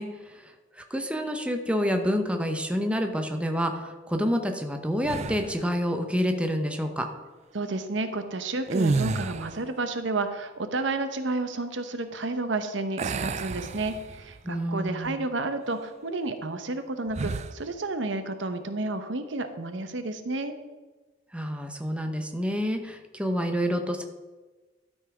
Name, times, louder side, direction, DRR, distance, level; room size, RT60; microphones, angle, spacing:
voice 1, 0.0-7.1 14.4-15.2 21.3-24.0, equal, 5° right, 5 dB, 0.8 m, -28 dB
sound 1, 5.0-5.7 8.6-9.7 13.0-14.4 14.9-15.1 17.1-17.6, right 3 dB, 35° right, 0.4 m, -30 dB
voice 2, 7.5-20.6, right 2 dB, 80° right, 9 dB, 0.9 m, -31 dB
12.5 x 5.5 x 4.9 m, 1.2 s
head